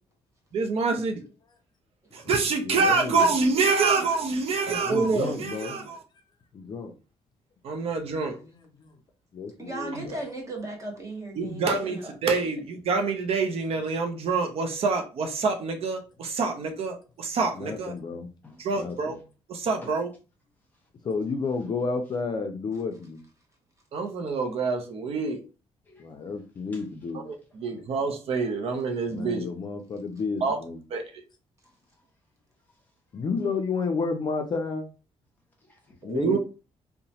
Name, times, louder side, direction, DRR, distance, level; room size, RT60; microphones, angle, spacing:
voice 1, 0.5-1.2 2.1-6.0 7.6-8.4 9.9-10.1 11.4-17.9 18.6-19.1 19.5-20.1 23.9-25.4 27.3-29.4 30.4-30.6 30.9-31.0 36.0-36.4, right 4 dB, 60° right, 0.5 m, -26 dB
voice 2, 2.6-3.3 4.8-5.9 6.5-6.9 8.8-8.9 9.3-10.2 17.5-18.3 18.7-19.2 21.0-23.2 26.0-27.2 29.1-30.8 33.1-34.8 36.0-36.4, left 4 dB, 40° left, 0.4 m, -31 dB
voice 3, 9.6-12.1, right 2 dB, 25° right, 1.0 m, -37 dB
voice 4, 25.8-26.3 26.7-26.8 27.7-27.9 31.6-32.1 32.6-33.2 35.6-36.0, left 2 dB, 15° left, 1.1 m, -53 dB
2.9 x 2.1 x 2.7 m
cardioid pair, 130°, 11 cm